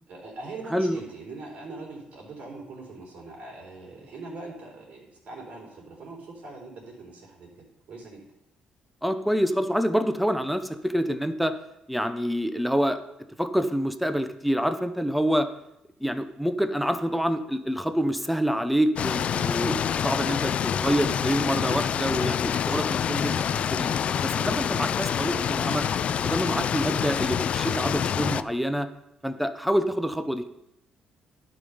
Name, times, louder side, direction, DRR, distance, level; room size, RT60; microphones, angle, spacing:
voice 1, 0.1-8.2, right 3 dB, 60° right, -2 dB, 4.0 m, -42 dB
voice 2, 9.0-11.5 11.9-13.0 13.4-15.5 16.0-20.5 20.8-23.4 23.7-23.9 24.2-25.8 26.2-28.9 29.2-30.5, equal, ahead, 9 dB, 0.7 m, -26 dB
sound 1, 19.0-28.4, left 8 dB, 50° left, 0.3 m, -27 dB
11.5 x 5.2 x 5.5 m, 0.86 s
cardioid pair, 120°, 3 cm